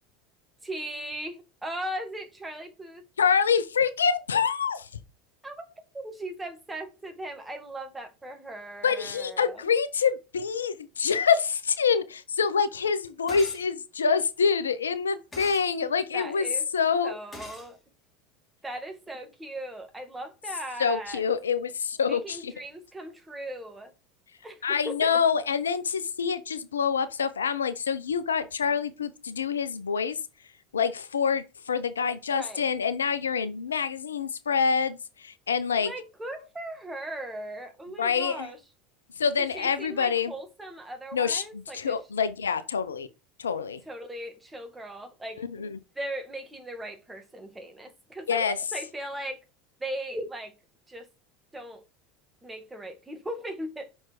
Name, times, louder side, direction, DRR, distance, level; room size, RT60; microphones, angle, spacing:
voice 1, 0.6-3.0 5.4-5.7 5.9-9.7 16.1-16.7 17.0-17.8 18.6-21.2 22.1-23.9 24.4-25.2 32.3-32.7 35.8-38.6 39.4-42.0 43.9-45.7 46.0-49.4 49.8-50.5 50.9-51.1 51.5-51.8 52.4-53.9, right 1 dB, 15° right, 2.0 m, -38 dB
voice 2, 3.2-4.9 8.8-16.5 16.7-17.2 20.8-22.5 24.6-30.2 30.7-35.9 38.0-38.5 39.2-40.3 41.1-43.1 43.4-43.8 45.4-45.8 48.3-48.6, left 6 dB, 90° left, 0.6 m, -26 dB
sound 1, 13.3-13.7 15.3-15.7 17.3-17.7, left 2 dB, 20° left, 2.8 m, -42 dB
5.9 x 4.4 x 4.7 m
hypercardioid pair, 85°, 0 cm